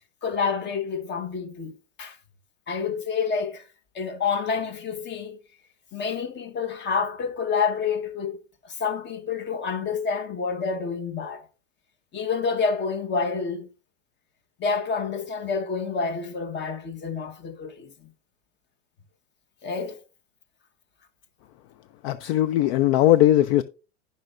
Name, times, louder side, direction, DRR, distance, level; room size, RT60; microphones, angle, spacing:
voice 1, 0.2-1.7 2.0-2.2 2.7-3.6 3.9-5.4 5.9-11.5 12.1-13.7 14.6-18.1 19.6-20.0, left 5 dB, 30° left, 1.2 m, -28 dB
voice 2, 22.0-23.6, left 13 dB, 50° left, 0.6 m, -19 dB
16.5 x 5.5 x 2.5 m
hypercardioid pair, 110°, 38 cm